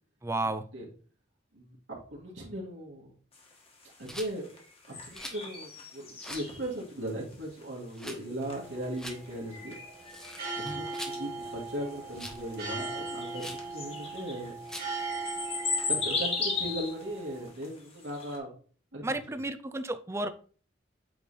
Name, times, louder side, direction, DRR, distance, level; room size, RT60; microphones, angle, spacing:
voice 1, 0.2-0.6 10.7-10.8 19.0-20.3, right 2 dB, 15° right, 11 dB, 0.5 m, -32 dB
voice 2, 1.5-3.1 4.0-4.5 5.1-9.7 10.6-14.5 15.9-18.5 18.9-19.1, right 1 dB, 90° right, -3 dB, 2.0 m, -38 dB
sound 1, 3.3-18.4, left 4 dB, 35° left, 1.5 m, -37 dB
Rattle, 4.0-4.3 5.1-5.4 6.2-6.5 7.9-8.2 8.9-9.2 10.0-11.2 12.1-12.4 13.4-13.7 14.7-15.0, equal, 5° left, 0.8 m, -43 dB
sound 2, 8.4-17.5, right 3 dB, 55° right, 2.3 m, -40 dB
8.4 x 3.3 x 4.2 m, 0.42 s
head